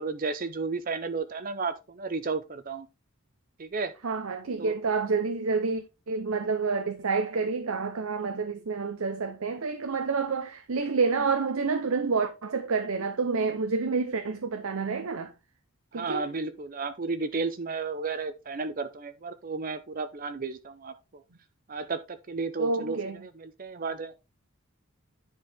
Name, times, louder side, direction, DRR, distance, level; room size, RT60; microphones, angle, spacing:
voice 1, 0.0-2.9 3.6-3.9 4.6-4.7 15.9-21.2 21.7-23.0 23.2-24.1, right 4 dB, 40° right, 0.6 m, -33 dB
voice 2, 4.0-15.3 15.9-16.3 22.6-23.2, right 4 dB, 80° right, 0.7 m, -28 dB
10.0 x 4.6 x 3.5 m
head